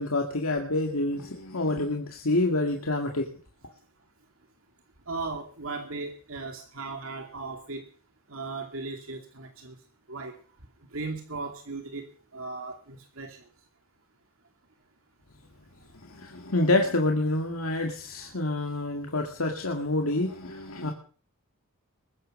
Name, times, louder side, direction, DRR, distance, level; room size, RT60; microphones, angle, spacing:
voice 1, 0.0-3.3 16.0-20.9, left 2 dB, 75° left, 3 dB, 2.2 m, -27 dB
voice 2, 5.1-7.9 8.3-9.8 10.1-10.3 10.9-13.4 18.2-18.3, right 3 dB, 70° right, 4 dB, 2.6 m, -37 dB
21.0 x 9.8 x 6.6 m, 0.41 s
head